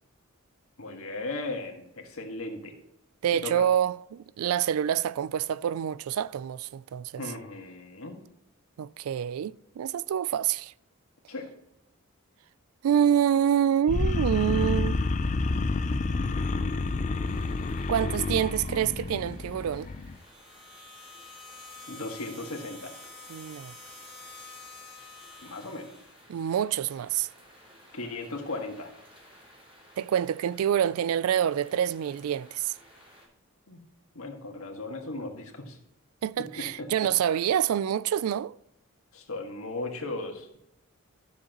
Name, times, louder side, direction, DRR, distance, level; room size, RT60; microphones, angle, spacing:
voice 1, 0.8-2.7 3.3-3.7 7.2-8.2 11.3-11.5 21.9-22.9 25.4-25.9 27.9-28.9 33.7-33.8 34.1-35.8 36.6-36.9 39.1-40.6, left 2 dB, 75° left, 1.7 m, -37 dB
voice 2, 3.2-7.2 8.8-10.7 12.8-15.0 17.9-19.9 23.3-23.7 26.3-27.3 30.0-32.7 36.2-38.6, right 9 dB, 80° right, 0.3 m, -27 dB
sound 1, 13.9-20.2, left 3 dB, 35° left, 0.4 m, -29 dB
sound 2, 17.2-33.3, equal, 25° right, 3.4 m, -56 dB
sound 3, 20.1-26.2, left 3 dB, ahead, 2.6 m, -48 dB
12.5 x 7.2 x 3.0 m
head